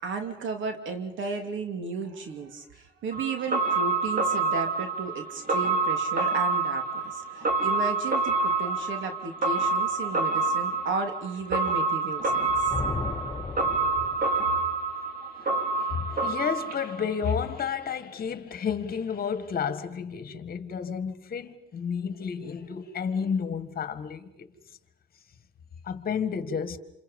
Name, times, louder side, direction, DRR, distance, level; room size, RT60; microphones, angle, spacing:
voice 1, 0.0-12.7, right 4 dB, 75° right, 3.0 m, -34 dB
sound 1, 3.1-17.3 17.6-17.7, right 3 dB, 45° right, 4.1 m, -27 dB
Thunder, 12.3-14.6, left 4 dB, 20° left, 3.8 m, -35 dB
voice 2, 15.7-24.5 25.8-26.8, left 6 dB, 50° left, 1.8 m, -31 dB
28.0 x 27.5 x 5.5 m
cardioid pair, 90°, 20 cm